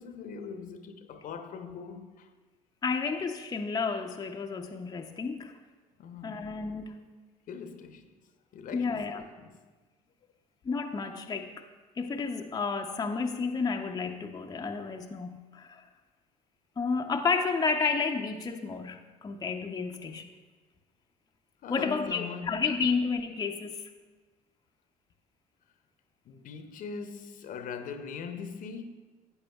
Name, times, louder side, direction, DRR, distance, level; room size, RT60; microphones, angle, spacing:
voice 1, 0.0-2.3 6.0-6.5 7.5-8.1 8.5-9.6 21.6-22.9 26.2-28.8, left 6 dB, 50° left, 0.8 m, -41 dB
voice 2, 2.8-5.5 6.2-7.0 8.7-9.2 10.6-11.6 12.0-15.8 16.8-20.3 21.7-23.8, left 4 dB, 20° left, 0.6 m, -31 dB
14.0 x 8.4 x 2.3 m
hypercardioid pair, 60°, 18 cm